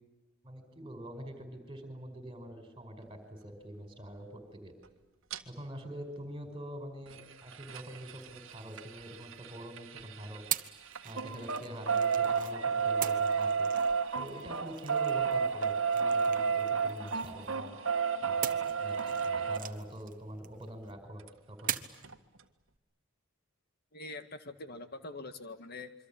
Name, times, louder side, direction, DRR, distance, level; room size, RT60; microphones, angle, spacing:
voice 1, 0.4-4.7 5.4-10.4 11.0-13.7 14.1-17.8 18.2-21.8, equal, 20° right, 6 dB, 5.1 m, -45 dB
sound 1, 5.3-5.4 7.1-10.6 10.9-19.6 21.3-21.4 21.6-21.7 22.0-22.1, right 6 dB, 60° right, 1.7 m, -31 dB
sound 2, 8.2-9.6 10.5-12.6 13.0-17.7 18.4-20.9 21.7-22.1, right 11 dB, 35° right, 1.2 m, -42 dB
voice 2, 23.9-25.9, left 2 dB, 45° left, 9 dB, 1.8 m, -44 dB
26.5 x 24.5 x 8.7 m, 1.1 s
head